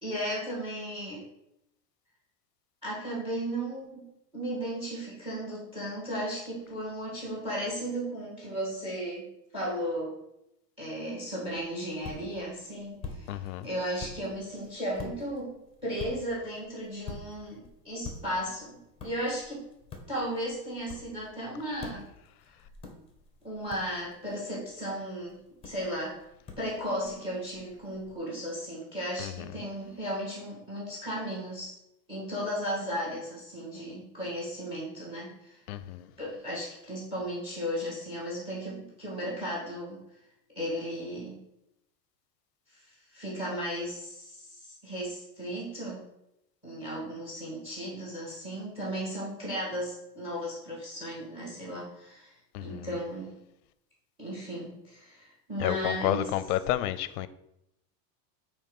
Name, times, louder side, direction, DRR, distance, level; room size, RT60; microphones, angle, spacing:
voice 1, 0.0-1.2 2.8-4.0 4.3-10.1 10.8-19.6 20.1-22.0 23.4-26.2 26.6-31.7 32.1-35.6 36.2-40.0 40.5-41.4 42.7-46.0 46.6-52.3 52.6-53.3 54.2-56.3, equal, 10° right, 2.5 m, -35 dB
sound 1, 11.4-28.2, left 4 dB, 10° left, 1.1 m, -48 dB
voice 2, 13.3-13.7 29.2-29.6 35.7-36.1 52.5-53.0 55.6-57.3, left 13 dB, 65° left, 0.6 m, -31 dB
8.6 x 3.1 x 5.4 m
supercardioid pair, 160°, 49 cm